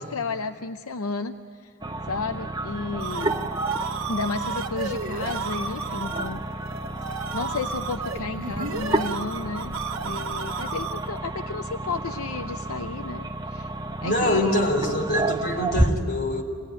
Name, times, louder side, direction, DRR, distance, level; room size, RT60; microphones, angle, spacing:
voice 1, 0.0-1.7 2.1-3.5 4.1-6.4 7.3-13.7 14.0-15.0, left 4 dB, 80° left, 8 dB, 0.6 m, -33 dB
sound 1, 1.8-15.9, right 2 dB, 20° right, 0.8 m, -31 dB
sound 2, 2.7-11.2, right 5 dB, 65° right, 1.1 m, -33 dB
voice 2, 14.0-16.4, left 1 dB, 50° left, 1 dB, 3.7 m, -24 dB
26.5 x 18.5 x 10.0 m, 2.2 s
head